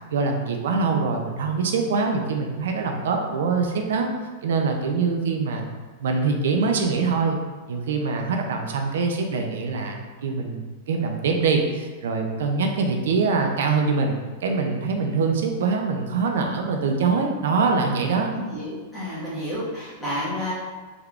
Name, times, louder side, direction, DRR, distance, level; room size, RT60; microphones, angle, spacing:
voice 1, 0.1-4.1 4.4-5.6 6.0-7.4 7.7-18.3, right 4 dB, 80° right, 3 dB, 0.4 m, -24 dB
voice 2, 18.3-20.5, left 1 dB, 5° left, -11 dB, 1.3 m, -30 dB
3.4 x 3.4 x 2.3 m, 1.3 s
supercardioid pair, 160°, 0 cm